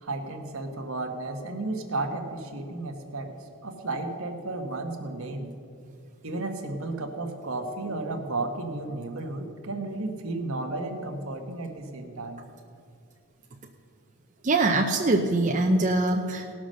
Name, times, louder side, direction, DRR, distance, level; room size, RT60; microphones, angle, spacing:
voice 1, 0.0-3.3 3.6-5.5 6.2-12.4, right 2 dB, 65° right, 4 dB, 1.3 m, -33 dB
voice 2, 14.4-16.5, right 2 dB, 35° right, 2 dB, 0.6 m, -23 dB
18.0 x 6.1 x 6.3 m, 2.3 s
head